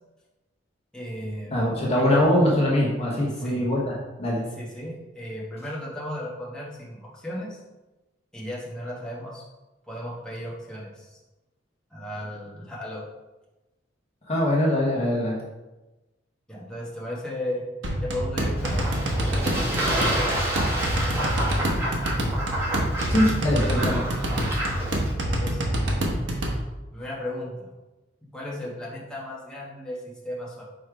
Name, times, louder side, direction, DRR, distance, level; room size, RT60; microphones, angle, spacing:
voice 1, 0.9-2.2 3.3-3.7 4.6-7.6 8.3-9.4 9.9-11.2 11.9-13.1 16.5-17.6 18.0-18.9 23.3-23.5 24.5-24.8 25.3-25.6 26.9-27.7 28.3-30.7, left 1 dB, 5° left, -6 dB, 1.3 m, -35 dB
voice 2, 1.5-3.9 4.2-4.4 14.3-15.4 23.1-24.0, left 1 dB, 35° left, -3 dB, 1.2 m, -22 dB
sound 1, 17.8-26.6, right 1 dB, 80° right, 1.1 m, -26 dB
Fowl / Bird / Water, 18.6-25.1, right 1 dB, 15° right, 1.8 m, -29 dB
4.9 x 4.2 x 4.8 m, 1.1 s
head